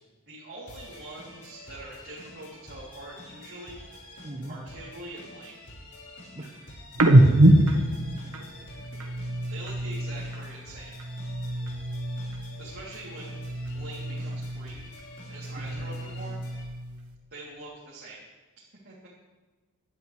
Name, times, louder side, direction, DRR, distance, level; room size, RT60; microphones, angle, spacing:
voice 1, 0.3-3.9 4.5-5.6 9.5-10.9 12.6-14.9 15.3-16.4 17.3-18.2 18.8-19.1, right 2 dB, 50° right, -8 dB, 3.4 m, -44 dB
sound 1, 0.7-16.6, left 1 dB, 85° left, 5.4 m, -47 dB
voice 2, 4.2-4.6 6.3-8.3 8.7-9.0 15.5-15.8, right 1 dB, 30° right, -1 dB, 1.4 m, -45 dB
sound 2, 6.9-10.5 10.8-12.7 12.9-14.8 15.2-17.0, right 1 dB, 85° right, 1.5 m, -25 dB
20.0 x 12.0 x 3.4 m, 1.2 s
head